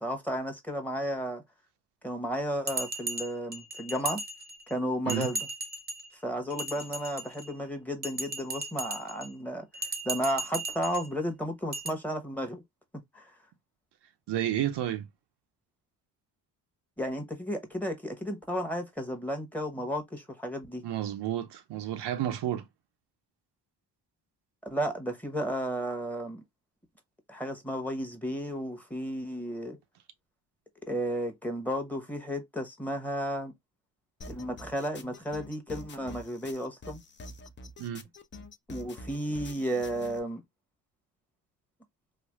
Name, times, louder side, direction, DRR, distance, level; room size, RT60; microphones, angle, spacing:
voice 1, 0.0-1.4 2.0-4.2 4.7-5.5 6.2-9.7 10.0-12.6 13.1-13.4 17.0-20.8 24.6-26.4 27.3-29.8 30.8-33.5 34.3-37.0 38.7-40.4, equal, 5° left, 0.9 m, -33 dB
Bell, 2.7-4.7 5.1-6.1 6.5-7.5 8.0-9.3 9.7-11.1 11.7-11.9, right 2 dB, 20° right, 0.6 m, -36 dB
voice 2, 14.3-15.1 20.8-22.7 37.8-38.1, right 11 dB, 65° right, 0.6 m, -31 dB
sound 1, 34.2-40.2, left 2 dB, 25° left, 0.5 m, -46 dB
3.2 x 2.4 x 2.2 m
cardioid pair, 85°, 45 cm